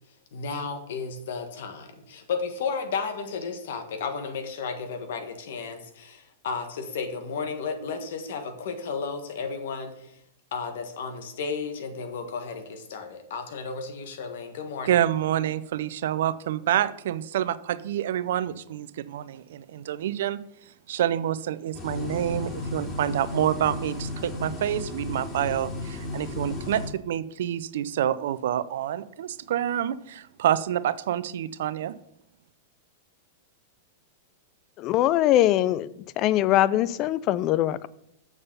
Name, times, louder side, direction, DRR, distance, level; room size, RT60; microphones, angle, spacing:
voice 1, 0.3-10.2 10.5-15.0, left 5 dB, 70° left, 1.5 m, -33 dB
voice 2, 14.9-20.4 20.9-32.0, right 11 dB, 70° right, 0.5 m, -27 dB
sound 1, 21.7-26.9, left 2 dB, 25° left, 3.2 m, -34 dB
voice 3, 34.8-35.9 36.2-37.9, left 13 dB, 40° left, 0.4 m, -22 dB
6.9 x 6.7 x 5.5 m
hypercardioid pair, 115°, 0 cm